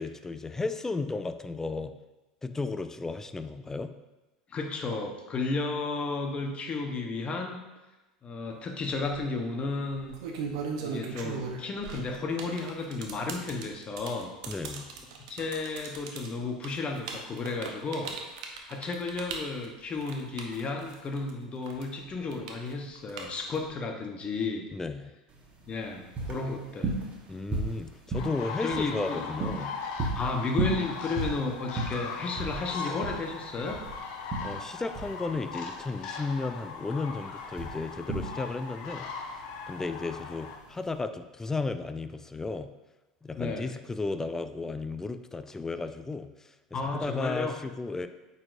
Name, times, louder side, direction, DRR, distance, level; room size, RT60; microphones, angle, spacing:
voice 1, 0.0-1.9 2.4-3.9 14.5-14.9 24.7-25.1 27.3-29.7 34.4-39.1 39.7-42.7 43.2-46.5 46.9-48.1, left 3 dB, 10° left, 10 dB, 0.4 m, -34 dB
voice 2, 4.5-7.6 8.2-10.1 10.8-14.3 15.3-18.2 18.5-24.7 25.7-26.9 28.6-29.2 30.1-33.8 43.4-43.7 46.7-47.5, left 3 dB, 30° left, 3 dB, 1.0 m, -33 dB
sound 1, 8.8-9.2 9.9-21.3 21.6-23.7, right 5 dB, 65° right, 0.8 m, -38 dB
sound 2, 25.3-41.0, right 3 dB, 30° right, 1.3 m, -36 dB
sound 3, 28.1-40.6, left 5 dB, 55° left, 0.8 m, -39 dB
8.6 x 4.2 x 2.6 m, 1.1 s
hypercardioid pair, 80°, 4 cm